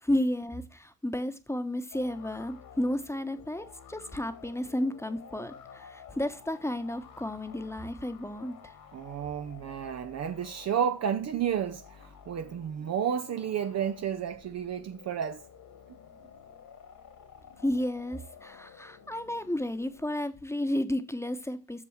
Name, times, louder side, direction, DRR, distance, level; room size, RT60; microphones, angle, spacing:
voice 1, 0.0-8.7 17.6-21.8, left 1 dB, 5° left, 1.2 m, -32 dB
sound 1, 1.9-20.3, left 7 dB, 45° left, 1.9 m, -52 dB
voice 2, 8.9-15.4, right 8 dB, 35° right, 0.7 m, -31 dB
7.4 x 6.8 x 6.4 m
figure-of-eight pair, 50°, 45 cm